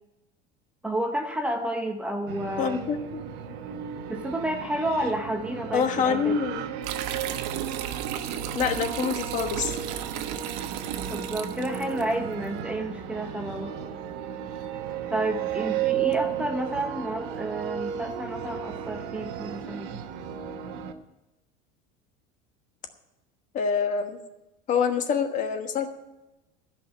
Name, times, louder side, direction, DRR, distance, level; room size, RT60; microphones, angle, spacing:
voice 1, 0.8-2.9 4.1-6.4 11.1-13.7 15.1-20.0, right 1 dB, 5° right, 4 dB, 0.8 m, -30 dB
sound 1, 2.3-20.9, right 9 dB, 60° right, 1.2 m, -34 dB
voice 2, 2.6-3.5 5.7-6.6 8.5-9.8 23.5-24.2 24.7-25.9, left 6 dB, 40° left, 7 dB, 1.3 m, -26 dB
sound 2, 6.8-12.0, right 9 dB, 90° right, 1.1 m, -34 dB
13.5 x 5.7 x 9.2 m, 1.0 s
cardioid pair, 155°, 20 cm